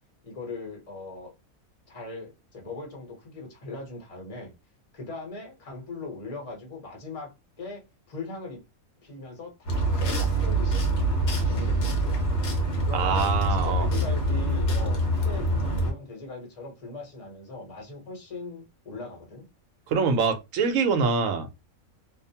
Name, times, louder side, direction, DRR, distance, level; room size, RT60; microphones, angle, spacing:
voice 1, 0.2-1.3 1.9-4.5 4.9-7.3 7.6-8.6 9.0-10.9 11.3-12.2 12.8-19.5, left 2 dB, 30° left, 0.9 m, -40 dB
sound 1, 9.7-15.9, right 1 dB, 55° left, 0.9 m, -25 dB
voice 2, 12.9-13.9 19.9-21.6, right 5 dB, 75° right, 1.0 m, -24 dB
2.6 x 2.0 x 2.7 m
omnidirectional pair, 1.5 m